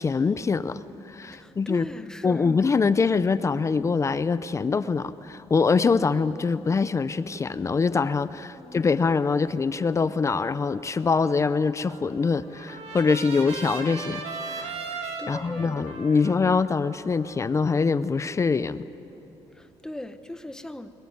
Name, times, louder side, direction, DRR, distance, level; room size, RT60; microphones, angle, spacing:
voice 1, 0.0-1.9 2.2-18.8, left 4 dB, 25° left, 14 dB, 0.6 m, -24 dB
voice 2, 1.3-2.5 8.6-8.8 15.2-15.9 16.2-16.4 19.5-20.9, left 1 dB, 5° left, 10 dB, 1.1 m, -39 dB
Trumpet, 11.9-18.1, right 4 dB, 80° right, 3.3 m, -38 dB
22.0 x 22.0 x 9.5 m, 3.0 s
cardioid pair, 125°, 11 cm